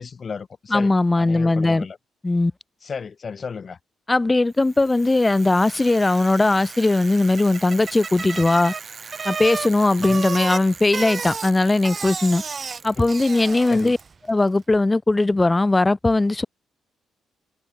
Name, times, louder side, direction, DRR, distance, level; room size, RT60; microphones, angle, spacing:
voice 1, 0.0-2.0 2.8-3.8 10.0-10.2 13.0-13.1 13.7-13.9, left 5 dB, 40° left, 4.6 m, -34 dB
voice 2, 0.7-1.9 2.2-2.5 4.1-8.7 9.2-12.4 12.8-14.0 14.3-16.5, left 2 dB, 15° left, 2.1 m, -19 dB
Bicycle, 4.7-14.1, right 5 dB, 40° right, 0.9 m, -33 dB
cardioid pair, 90°, 0 cm